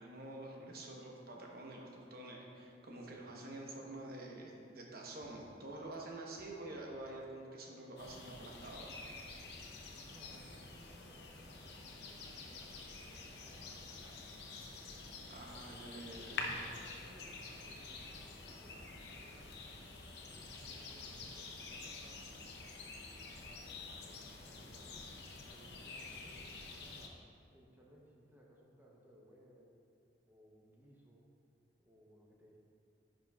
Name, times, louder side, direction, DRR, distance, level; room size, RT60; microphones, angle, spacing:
voice 1, 0.0-8.9 15.3-16.6, right 2 dB, 55° right, -1 dB, 1.0 m, -48 dB
sound 1, 5.2-7.4, left 1 dB, 25° left, 0.5 m, -66 dB
sound 2, 8.0-27.1, left 3 dB, 65° left, 0.7 m, -48 dB
voice 2, 10.0-15.0 16.2-19.5 20.3-22.2 23.3-29.8 30.3-31.3 31.8-32.6, equal, 10° right, -3 dB, 0.7 m, -63 dB
10.5 x 5.2 x 2.3 m, 2.5 s
head